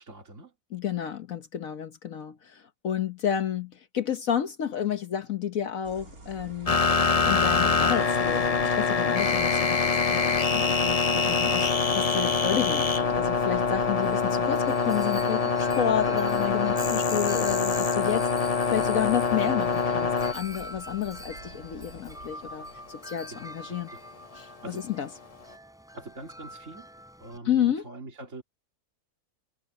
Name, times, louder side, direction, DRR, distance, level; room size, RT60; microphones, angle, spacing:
voice 1, 0.0-0.5 16.6-16.9 23.3-23.4 23.7-24.0 24.4-24.8 25.9-26.9 27.2-28.4, right 3 dB, 55° right, 3.4 m, -43 dB
voice 2, 0.7-6.8 7.3-23.9 24.3-25.1 27.4-27.9, left 9 dB, 65° left, 1.4 m, -31 dB
sound 1, 5.8-23.1, right 2 dB, 70° right, 4.0 m, -47 dB
sound 2, 6.7-20.3, left 5 dB, 30° left, 0.8 m, -24 dB
Wind chime, 14.0-27.4, equal, ahead, 3.7 m, -45 dB
omnidirectional pair, 1.6 m